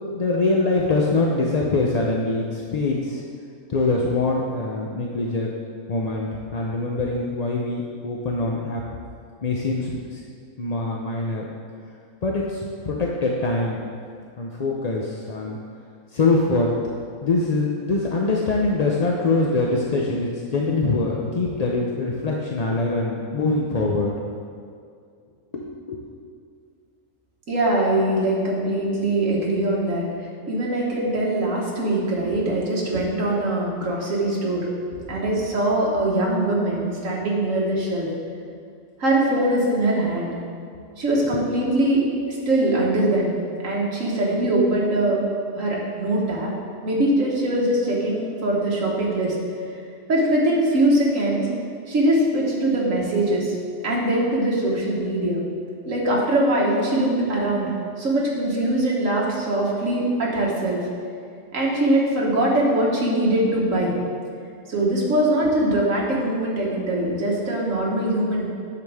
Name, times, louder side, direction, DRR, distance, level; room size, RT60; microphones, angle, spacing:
voice 1, 0.0-3.2 3.7-5.5 5.9-8.8 9.4-10.2 10.6-11.4 12.2-13.9 14.4-15.6 16.1-16.7 17.2-24.1 25.5-26.0, left 3 dB, 45° left, -2 dB, 0.5 m, -23 dB
voice 2, 27.5-30.0 30.5-38.1 39.0-40.4 41.0-42.0 42.3-43.4 43.6-45.2 45.5-46.5 46.8-49.3 50.1-51.4 51.9-53.5 53.8-55.4 55.9-57.7 58.0-60.8 61.5-63.9 64.7-68.5, right 1 dB, 70° right, -3 dB, 1.8 m, -22 dB
9.4 x 6.9 x 3.5 m, 2.3 s
omnidirectional pair, 1.4 m